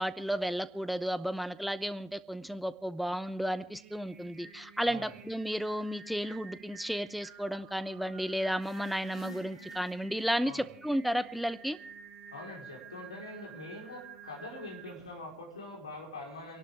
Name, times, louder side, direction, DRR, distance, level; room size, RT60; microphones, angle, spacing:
voice 1, 0.0-11.8, equal, ahead, 14 dB, 0.7 m, -33 dB
Singing, 3.5-15.3, right 6 dB, 25° right, 2.8 m, -51 dB
voice 2, 4.8-5.1 10.4-10.7 12.3-16.6, left 2 dB, 70° left, 0 dB, 4.6 m, -44 dB
sound 1, 8.6-10.6, left 2 dB, 90° left, 2.6 m, -52 dB
29.0 x 11.5 x 3.7 m, 0.68 s
figure-of-eight pair, 90°, 3 cm